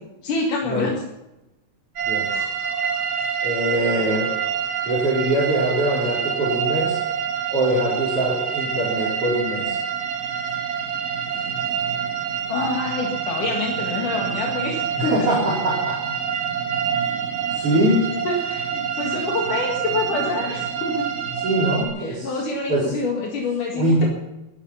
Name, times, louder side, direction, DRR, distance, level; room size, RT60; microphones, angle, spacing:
voice 1, 0.2-1.0 2.3-2.5 12.5-15.1 18.3-21.1 22.0-24.0, left 3 dB, 75° left, -1 dB, 3.5 m, -26 dB
sound 1, 2.0-21.8, right 7 dB, 80° right, 3.9 m, -26 dB
voice 2, 3.4-4.3 4.9-7.0 7.5-9.8 15.0-16.0 17.5-18.1 21.4-22.4 22.7-22.9 23.7-24.1, right 1 dB, 45° right, -7 dB, 5.1 m, -22 dB
22.0 x 10.5 x 5.7 m, 0.94 s
omnidirectional pair, 3.6 m